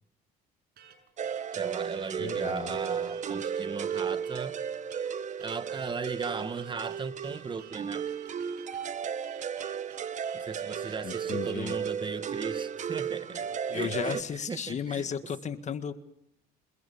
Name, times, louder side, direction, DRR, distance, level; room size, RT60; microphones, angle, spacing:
sound 1, 0.8-11.3, right 8 dB, 70° right, 6.8 m, -54 dB
sound 2, 1.2-14.2, right 7 dB, 45° right, 1.4 m, -34 dB
voice 1, 1.5-4.6 5.4-8.1 10.3-15.1, right 5 dB, 30° right, 12 dB, 1.5 m, -37 dB
voice 2, 2.2-2.8 11.0-11.8 13.7-15.9, left 7 dB, 45° left, 10 dB, 1.8 m, -34 dB
28.0 x 21.5 x 7.2 m, 0.74 s
cardioid pair, 110°, 17 cm